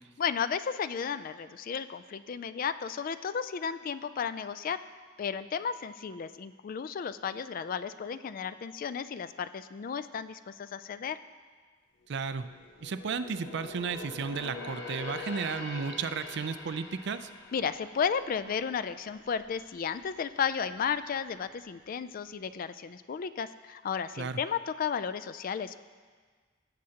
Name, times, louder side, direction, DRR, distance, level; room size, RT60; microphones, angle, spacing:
voice 1, 0.2-4.8 5.2-11.2 17.5-25.8, left 7 dB, 45° left, 13 dB, 0.3 m, -33 dB
sound 1, 12.0-19.6 19.9-20.2 20.7-21.4 21.8-21.9, left 3 dB, 60° left, 0.9 m, -44 dB
voice 2, 12.1-12.5 12.8-17.3 24.2-24.4, right 5 dB, 60° right, 11 dB, 0.4 m, -34 dB
17.5 x 7.6 x 2.8 m, 1.5 s
head